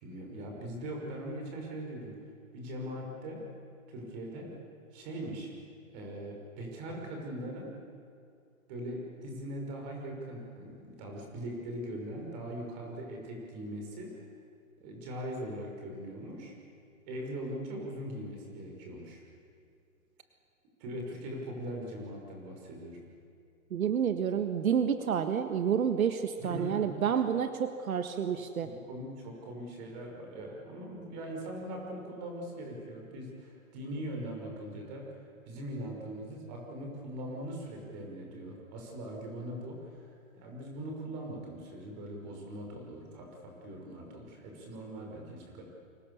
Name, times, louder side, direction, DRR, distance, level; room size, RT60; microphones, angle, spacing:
voice 1, 0.0-2.1 2.5-3.4 3.9-4.5 4.9-5.5 5.9-7.7 8.7-14.3 14.8-16.6 17.1-19.2 20.8-23.0 26.4-26.9 28.6-35.1 35.5-40.1 40.4-45.6, right 1 dB, 30° right, 1 dB, 6.0 m, -41 dB
voice 2, 23.7-28.7, right 8 dB, 80° right, 8 dB, 1.7 m, -29 dB
29.5 x 25.0 x 7.1 m, 2.4 s
hypercardioid pair, 165°, 42 cm